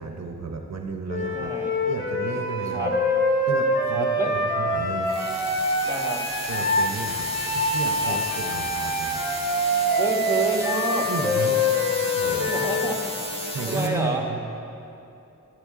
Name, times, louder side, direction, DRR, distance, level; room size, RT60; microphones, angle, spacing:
voice 1, 0.0-1.5 1.9-2.9 3.5-5.1 6.5-9.2 11.1-11.6 12.2-12.5 13.5-14.6, right 4 dB, 60° right, 3 dB, 0.7 m, -33 dB
Wind instrument woodwind instrument, 1.1-6.9 7.3-13.0, left 1 dB, 35° left, 1.9 m, -25 dB
voice 2, 1.3-1.7 2.7-2.9 3.9-4.3 5.9-6.2 8.0-8.2 9.9-11.1 12.5-14.2, right 1 dB, 10° right, -1 dB, 1.2 m, -29 dB
sound 1, 5.1-13.9, left 1 dB, 20° left, 1.2 m, -34 dB
11.0 x 9.3 x 3.6 m, 2.7 s
wide cardioid pair, 65°, 31 cm